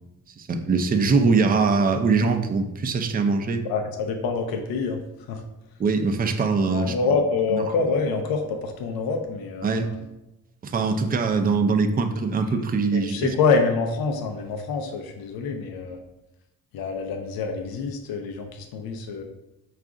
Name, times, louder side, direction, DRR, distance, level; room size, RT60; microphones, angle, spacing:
voice 1, 0.4-3.6 5.8-6.9 7.5-7.6 9.6-9.9 10.6-13.3, right 4 dB, 25° right, 7 dB, 0.4 m, -22 dB
voice 2, 3.7-5.0 5.3-5.4 6.7-10.0 12.9-16.0 16.7-19.2, left 4 dB, 90° left, 3 dB, 0.5 m, -26 dB
4.7 x 2.4 x 3.6 m, 0.94 s
cardioid pair, 90°, 35 cm